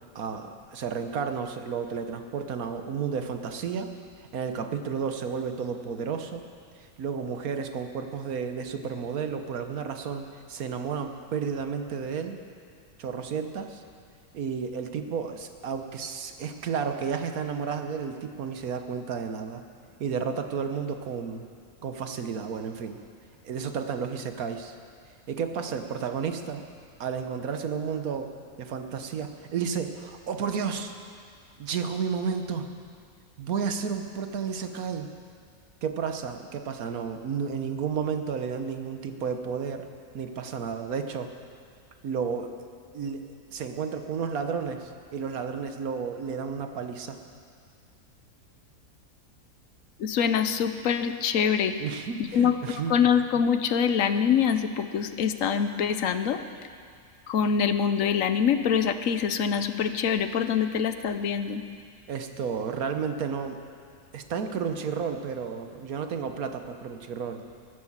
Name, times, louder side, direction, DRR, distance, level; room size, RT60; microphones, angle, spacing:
voice 1, 0.1-3.9 4.3-6.4 6.8-12.4 13.0-13.8 14.3-19.6 20.0-21.4 21.8-23.0 23.4-24.7 25.3-26.6 27.0-28.3 28.6-30.9 31.6-32.7 33.4-35.1 35.8-39.9 40.1-41.3 42.0-42.5 42.9-47.2 51.8-52.9 62.1-63.6 64.1-67.4, right 6 dB, 80° right, 7 dB, 1.5 m, -32 dB
voice 2, 50.0-51.7 52.2-52.5 52.9-56.4 57.3-61.6, left 7 dB, 70° left, 10 dB, 1.1 m, -24 dB
19.5 x 9.6 x 7.3 m, 2.2 s
omnidirectional pair, 1.5 m